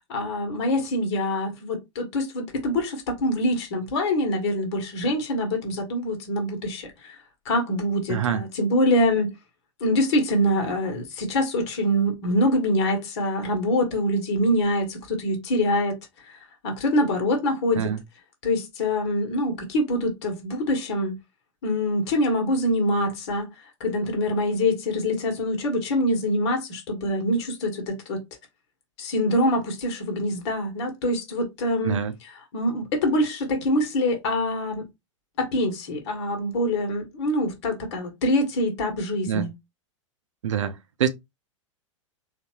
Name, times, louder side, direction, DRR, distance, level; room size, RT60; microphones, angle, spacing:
voice 1, 0.1-7.2 7.4-9.3 9.8-16.0 16.2-16.4 16.6-17.9 18.4-21.2 21.6-23.5 23.8-28.2 29.0-34.9 35.4-39.5, left 1 dB, 55° left, 1.4 m, -25 dB
voice 2, 8.1-8.4 17.8-18.0 31.8-32.1 39.3-39.5 40.4-40.7 41.0-41.1, right 9 dB, 65° right, 0.6 m, -24 dB
3.8 x 2.6 x 3.0 m
figure-of-eight pair, 95°, 17 cm